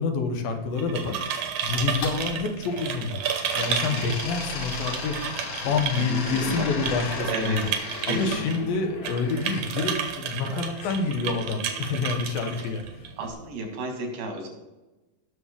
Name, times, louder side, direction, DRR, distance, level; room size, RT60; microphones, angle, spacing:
voice 1, 0.0-3.2 3.6-7.7 8.1-12.8, left 4 dB, 90° left, 5 dB, 2.9 m, -28 dB
sound 1, 0.6-13.3, right 7 dB, 65° right, 2.2 m, -33 dB
sound 2, 1.7-3.1 3.5-9.7 10.7-11.9, left 3 dB, 60° left, 2.9 m, -36 dB
voice 2, 5.9-6.7 7.3-8.8 10.4-10.5 12.6-12.7 13.2-14.5, right 1 dB, 80° right, 2 dB, 3.9 m, -33 dB
18.0 x 6.5 x 3.7 m, 1.1 s
omnidirectional pair, 4.0 m